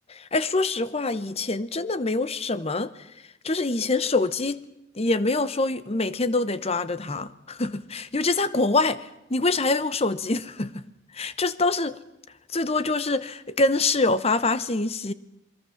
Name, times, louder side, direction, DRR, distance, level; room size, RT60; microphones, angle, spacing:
voice 1, 0.1-2.9 3.4-4.6 4.9-10.8 11.1-12.0 12.5-15.1, left 3 dB, 30° left, 0.9 m, -25 dB
27.5 x 22.5 x 7.2 m
head